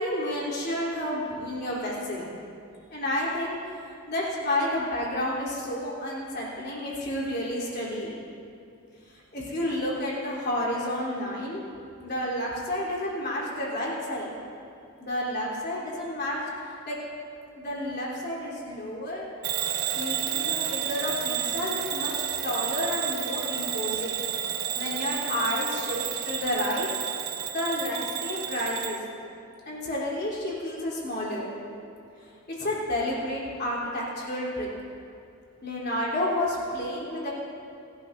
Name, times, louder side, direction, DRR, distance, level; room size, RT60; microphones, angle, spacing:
voice 1, 0.0-2.3 2.9-3.6 4.1-8.2 9.1-11.6 12.0-14.3 15.0-16.4 16.9-17.0 17.6-19.2 19.9-22.1 22.4-24.2 24.7-26.9 27.5-29.0 29.7-31.4 32.2-34.7 35.6-37.3, left 1 dB, 45° left, -6 dB, 3.5 m, -30 dB
Bell / Alarm, 19.4-29.0, right 9 dB, 75° right, 0.9 m, -31 dB
27.5 x 12.0 x 2.7 m, 2.6 s
head